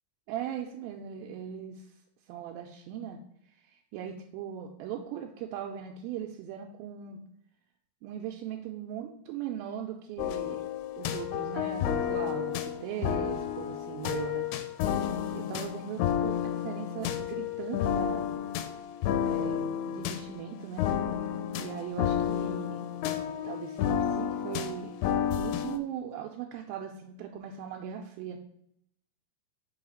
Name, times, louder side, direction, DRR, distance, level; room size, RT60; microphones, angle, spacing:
voice 1, 0.3-1.9 2.3-3.2 3.7-7.2 8.0-10.7 11.0-14.5 15.3-18.3 19.2-20.9 21.5-24.9 25.3-28.4, right 9 dB, 80° right, 2 dB, 2.2 m, -39 dB
sound 1, 10.2-25.8, left 9 dB, 85° left, 2.5 m, -31 dB
5.6 x 3.8 x 5.0 m, 0.75 s
omnidirectional pair, 4.6 m